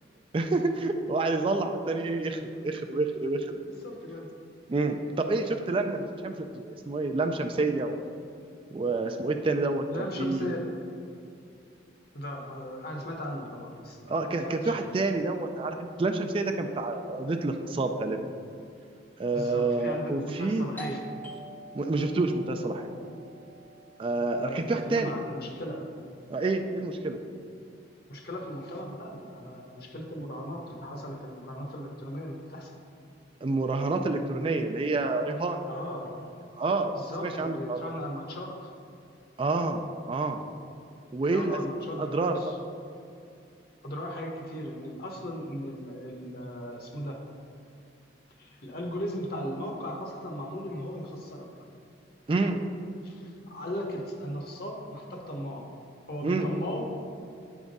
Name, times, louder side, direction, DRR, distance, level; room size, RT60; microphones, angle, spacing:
voice 1, 0.3-3.5 4.7-8.0 8.7-10.6 14.1-18.2 19.2-20.7 21.7-22.9 24.0-25.2 26.3-27.2 33.4-35.6 36.6-36.9 37.2-37.8 39.4-40.4 41.1-41.6 42.0-42.5 52.3-52.6 56.2-56.5, right 3 dB, 30° right, 5 dB, 0.3 m, -28 dB
voice 2, 3.6-4.3 9.9-10.6 12.1-14.9 19.3-21.0 24.4-25.9 28.1-32.7 35.6-36.2 37.0-38.7 41.2-42.6 43.8-47.2 48.4-51.5 53.0-55.7 56.1-56.9, equal, 55° left, 1 dB, 1.1 m, -37 dB
Doorbell, 20.8-26.2, right 2 dB, 10° left, 0.6 m, -47 dB
9.1 x 3.6 x 5.2 m, 2.6 s
head